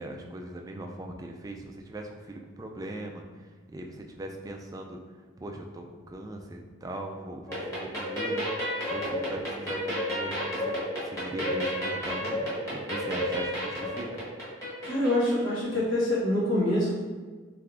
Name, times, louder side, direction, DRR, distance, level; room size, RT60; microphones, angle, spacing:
voice 1, 0.0-3.2 3.7-5.0 5.4-8.4 8.9-10.8 11.0-14.2, right 1 dB, 15° right, 2 dB, 0.3 m, -39 dB
sound 1, 7.5-15.6, equal, 15° left, 1.3 m, -32 dB
voice 2, 14.8-16.9, left 1 dB, 65° left, -7 dB, 1.5 m, -25 dB
3.4 x 3.3 x 3.7 m, 1.4 s
head